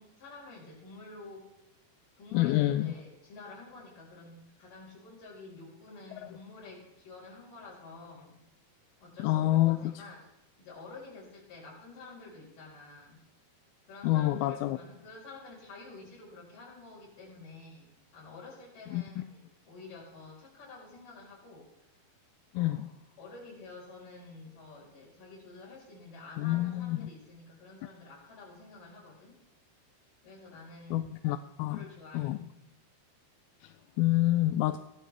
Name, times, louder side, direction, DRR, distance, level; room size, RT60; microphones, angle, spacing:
voice 1, 0.0-1.5 2.2-8.4 9.0-10.3 10.6-13.2 13.9-21.7 22.5-22.8 23.2-29.4 30.2-31.2 31.7-32.6, left 3 dB, 60° left, -5 dB, 6.2 m, -49 dB
voice 2, 2.3-2.9 6.2-6.4 9.2-9.9 14.0-14.8 18.9-19.0 22.5-22.9 26.4-27.1 30.9-31.9 32.1-32.5 33.6-34.8, left 15 dB, 85° left, 10 dB, 2.3 m, -28 dB
16.5 x 12.0 x 3.4 m, 0.93 s
omnidirectional pair, 4.4 m